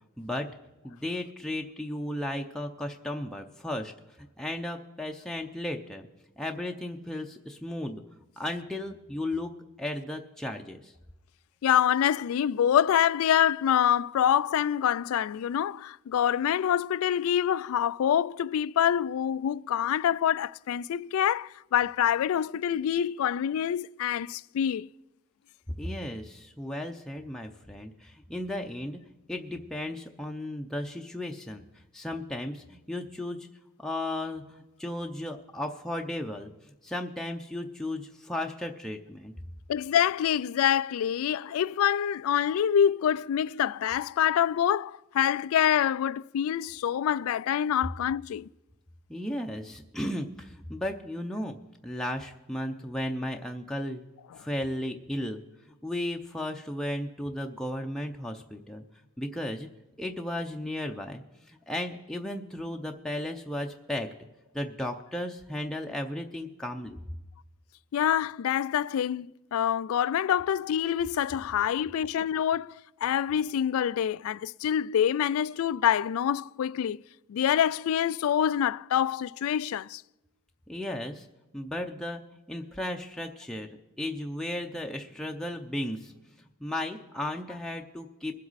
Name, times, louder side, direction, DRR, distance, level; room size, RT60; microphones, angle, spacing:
voice 1, 0.2-0.5 0.8-3.9 4.4-6.1 6.4-8.0 8.4-10.9 25.8-29.0 29.3-31.6 31.9-33.5 33.8-36.5 36.8-39.3 49.1-51.6 51.8-54.0 54.4-55.4 55.8-58.8 59.2-59.7 60.0-61.2 61.5-64.1 64.5-67.0 80.7-81.3 81.5-82.2 82.5-83.7 84.0-86.1 86.6-88.3, left 1 dB, ahead, 0.6 m, -35 dB
voice 2, 11.6-24.9 39.7-48.5 67.9-72.7 73.0-77.0 77.3-80.0, left 9 dB, 75° left, 0.3 m, -26 dB
21.5 x 7.7 x 4.1 m
head